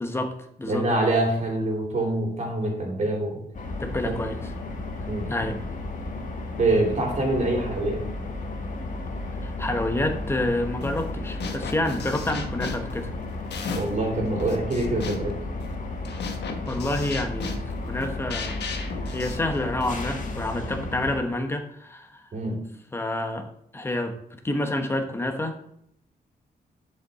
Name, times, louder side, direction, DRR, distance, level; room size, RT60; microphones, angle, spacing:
voice 1, 0.0-0.8 3.8-4.4 5.3-5.6 9.4-13.1 16.6-18.6 19.0-22.2 22.9-24.1 24.4-25.6, left 1 dB, 15° left, 5 dB, 1.0 m, -28 dB
voice 2, 0.7-3.4 4.0-4.1 5.1-5.3 6.5-8.0 13.7-15.4 22.3-22.6, right 2 dB, 45° right, 0 dB, 3.0 m, -25 dB
sound 1, 3.5-21.2, left 2 dB, 50° left, 1.4 m, -33 dB
sound 2, 10.8-11.1 11.4-14.0 14.4-20.1, left 5 dB, 80° left, 1.3 m, -36 dB
11.0 x 5.5 x 4.1 m, 0.71 s
wide cardioid pair, 155°, 17 cm